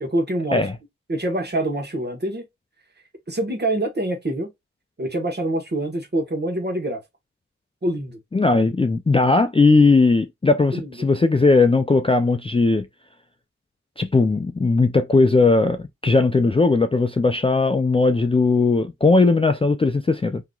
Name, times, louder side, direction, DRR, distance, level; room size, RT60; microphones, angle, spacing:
voice 1, 0.0-0.6 1.1-2.5 3.3-4.5 5.0-7.0 7.8-8.2 10.7-11.1, right 1 dB, 35° right, 1.1 m, -25 dB
voice 2, 8.3-12.9 14.0-20.4, left 3 dB, 20° left, 0.3 m, -18 dB
3.7 x 2.9 x 2.3 m
wide cardioid pair, 65°, 29 cm